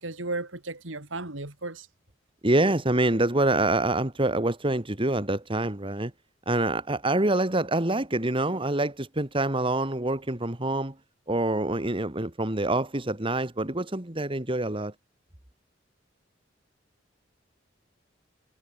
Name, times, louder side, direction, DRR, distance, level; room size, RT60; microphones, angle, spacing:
voice 1, 0.0-1.9, right 2 dB, 85° right, 3.4 m, -34 dB
voice 2, 2.4-6.1 6.5-10.9 11.3-14.9, right 2 dB, 25° right, 2.1 m, -26 dB
head